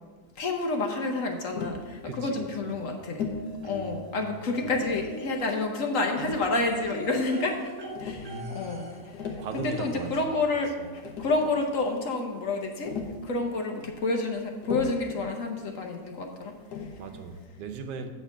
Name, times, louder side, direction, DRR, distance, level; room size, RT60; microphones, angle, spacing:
voice 1, 0.4-3.3 3.6-7.7 8.0-13.0 13.2-16.9, left 3 dB, 55° left, 3 dB, 1.2 m, -29 dB
Tap, 1.5-1.9 3.2-3.5 4.6-5.1 6.2-6.9 7.9-8.3 9.0-9.5 10.7-10.8 11.0-11.6 12.9-13.3 14.6-15.1 16.7-17.0, left 5 dB, 80° left, 1.6 m, -36 dB
voice 2, 2.0-2.8 3.7-4.6 8.1-8.8 9.4-10.3 17.0-18.1, right 3 dB, 80° right, 7 dB, 1.3 m, -38 dB
sound 1, 3.2-4.1 4.6-10.3 11.5-11.6 11.9-12.0, right 1 dB, 30° right, 1.5 m, -42 dB
8.3 x 4.4 x 7.1 m, 1.4 s
omnidirectional pair, 1.8 m